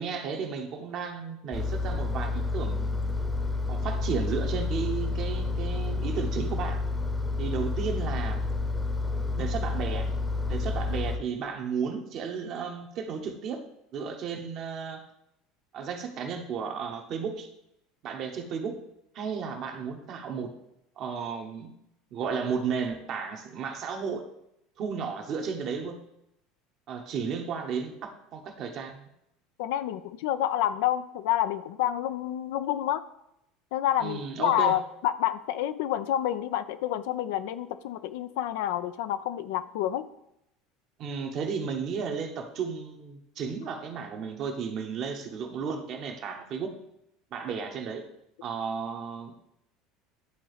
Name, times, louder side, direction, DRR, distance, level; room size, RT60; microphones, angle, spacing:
voice 1, 0.0-3.2 3.7-6.8 7.4-8.5 9.4-10.1 10.5-13.6 13.9-15.0 15.7-17.5 18.0-18.8 19.1-20.5 21.0-21.7 22.1-24.2 24.8-26.0 26.9-29.0 34.0-34.7 41.0-46.8 47.3-48.0 48.4-49.3, right 6 dB, 50° right, 3 dB, 1.0 m, -33 dB
Engine, 1.5-11.2, left 3 dB, 10° left, 0.8 m, -29 dB
voice 2, 29.6-33.0 33.7-40.1, left 12 dB, 70° left, 12 dB, 0.4 m, -28 dB
11.0 x 3.8 x 3.3 m, 0.81 s
hypercardioid pair, 75°, 0 cm